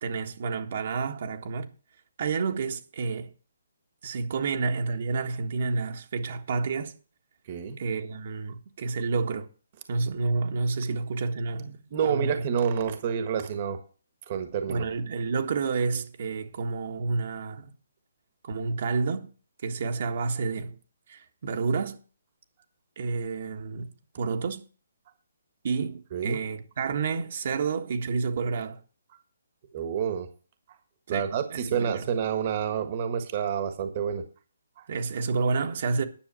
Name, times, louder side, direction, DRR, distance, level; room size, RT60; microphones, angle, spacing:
voice 1, 0.0-1.7 2.2-3.3 4.0-6.9 7.8-9.5 9.9-12.5 14.7-17.7 18.4-19.3 19.6-20.8 21.1-22.0 23.0-23.9 24.2-24.6 25.6-28.8 31.1-32.1 34.9-36.0, right 4 dB, 50° right, 1.5 m, -29 dB
voice 2, 7.5-7.8 11.9-13.8 14.3-14.9 26.1-26.4 29.7-30.3 31.1-34.2 34.8-34.9, right 7 dB, 35° right, 1.5 m, -28 dB
10.5 x 6.3 x 7.6 m
hypercardioid pair, 160°, 0 cm